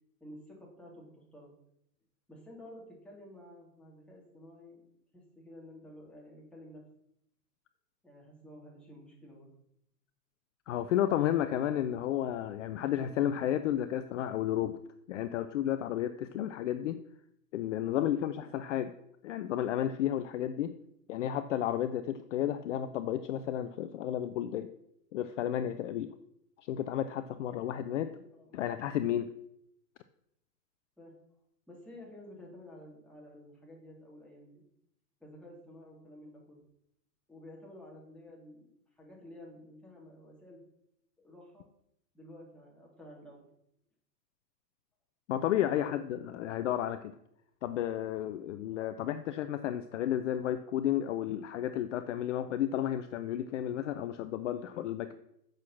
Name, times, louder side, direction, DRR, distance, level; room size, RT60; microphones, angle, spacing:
voice 1, 0.2-1.5 2.3-4.8 5.1-6.8 8.0-9.5 17.9-18.3 27.5-27.7 28.0-28.6 31.0-31.1 31.7-34.7 35.2-36.6 37.3-40.6 41.2-41.7 42.1-43.5 45.7-45.9, left 1 dB, ahead, -3 dB, 2.7 m, -51 dB
voice 2, 10.7-14.8 15.1-17.0 17.5-18.9 19.2-20.7 21.1-24.7 25.1-26.1 26.7-28.1 28.5-29.3 45.3-47.1 47.6-55.1, left 11 dB, 50° left, 11 dB, 0.6 m, -32 dB
8.2 x 6.5 x 7.2 m, 0.77 s
hypercardioid pair, 140°, 50 cm